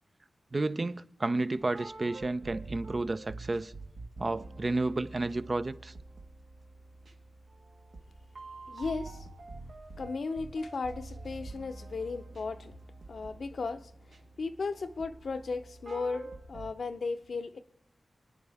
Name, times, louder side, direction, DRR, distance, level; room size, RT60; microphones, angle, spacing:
voice 1, 0.5-3.7 4.2-5.9, right 2 dB, 40° right, 0.6 m, -31 dB
sound 1, 1.6-16.7, right 2 dB, 75° right, 1.4 m, -47 dB
voice 2, 8.7-9.3 10.0-12.7 13.1-13.9 14.4-17.6, left 4 dB, 70° left, 0.7 m, -35 dB
27.0 x 9.8 x 3.5 m
wide cardioid pair, 75°, 0 cm